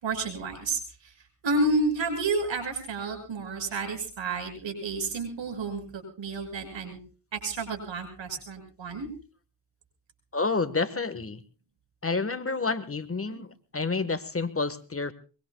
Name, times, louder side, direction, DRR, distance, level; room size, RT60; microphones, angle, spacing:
voice 1, 0.0-1.1 1.4-7.0 7.3-9.1, right 2 dB, 85° right, 4 dB, 6.7 m, -30 dB
voice 2, 10.3-11.4 12.0-15.1, left 4 dB, 30° left, 12 dB, 1.4 m, -29 dB
23.5 x 23.5 x 2.3 m, 0.36 s
cardioid pair, 70°, 44 cm